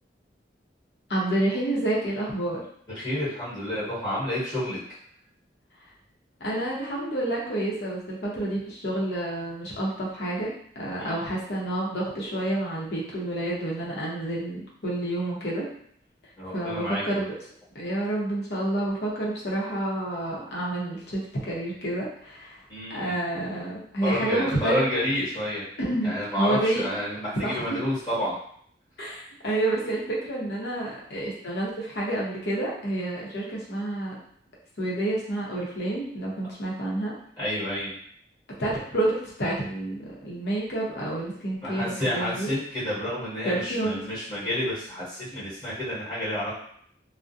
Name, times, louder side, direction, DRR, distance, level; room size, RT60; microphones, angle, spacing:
voice 1, 1.1-2.6 6.4-15.7 16.5-17.3 17.7-22.6 22.9-24.8 25.8-26.8 27.4-27.6 29.0-34.2 34.8-37.1 38.6-42.5 43.4-44.0, right 1 dB, 65° left, -4 dB, 0.7 m, -29 dB
voice 2, 2.9-4.8 11.0-11.4 16.4-17.0 22.7-23.1 24.0-25.7 26.0-28.3 37.4-37.9 41.6-46.5, left 1 dB, 20° left, -10 dB, 1.2 m, -29 dB
2.4 x 2.1 x 2.6 m, 0.64 s
head